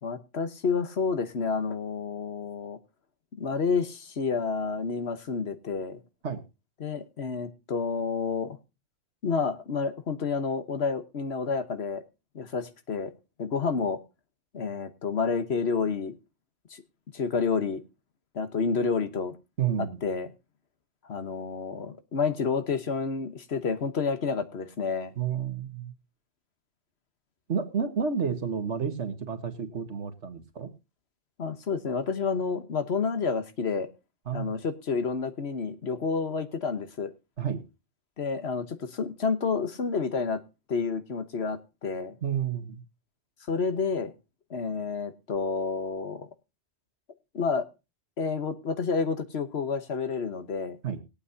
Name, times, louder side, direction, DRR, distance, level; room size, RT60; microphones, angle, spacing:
voice 1, 0.0-2.8 3.4-6.0 6.8-8.6 9.2-12.0 12.3-13.1 13.4-14.0 14.5-16.1 16.7-16.8 17.1-17.8 18.3-19.4 19.8-20.3 21.0-25.1 31.4-33.9 34.3-37.1 38.2-40.4 40.7-42.1 43.5-44.1 44.5-46.3 47.3-47.7 48.2-50.8, left 5 dB, 65° left, 10 dB, 1.5 m, -29 dB
voice 2, 19.6-20.0 25.1-25.9 27.5-30.7 34.2-34.6 37.4-37.6 42.2-42.8 50.8-51.0, right 7 dB, 85° right, 8 dB, 1.8 m, -30 dB
20.5 x 8.7 x 2.8 m, 0.28 s
omnidirectional pair, 1.2 m